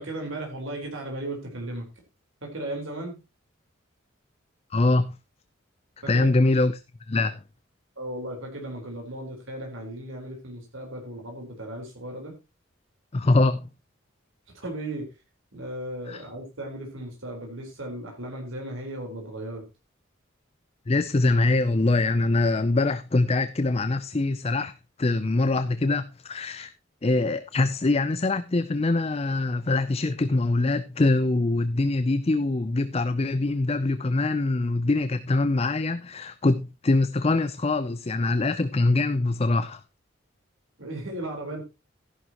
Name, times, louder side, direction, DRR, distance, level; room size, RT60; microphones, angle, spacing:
voice 1, 0.0-1.9 2.4-3.1 6.0-6.3 8.0-12.3 14.5-15.0 15.5-19.6 40.8-41.6, right 1 dB, 80° right, 4.2 m, -36 dB
voice 2, 4.7-5.1 6.1-6.8 7.1-7.4 13.1-13.6 16.1-16.2 20.9-24.7 25.0-26.7 27.0-39.8, left 2 dB, 30° left, 0.5 m, -23 dB
13.5 x 11.0 x 3.0 m
head